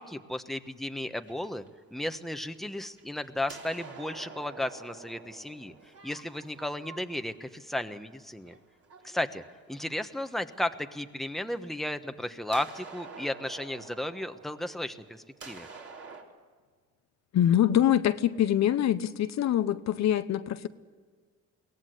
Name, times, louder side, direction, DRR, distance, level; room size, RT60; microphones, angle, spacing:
voice 1, 0.0-1.6 1.9-5.7 6.0-8.5 9.0-15.7, left 1 dB, ahead, 8 dB, 1.2 m, -34 dB
sound 1, 0.7-2.4 2.8-10.1 11.6-11.7 12.5-16.2, right 4 dB, 50° right, 4.0 m, -48 dB
voice 2, 17.3-20.7, left 11 dB, 65° left, 11 dB, 0.9 m, -24 dB
22.5 x 18.0 x 8.1 m, 1.5 s
cardioid pair, 90°, 30 cm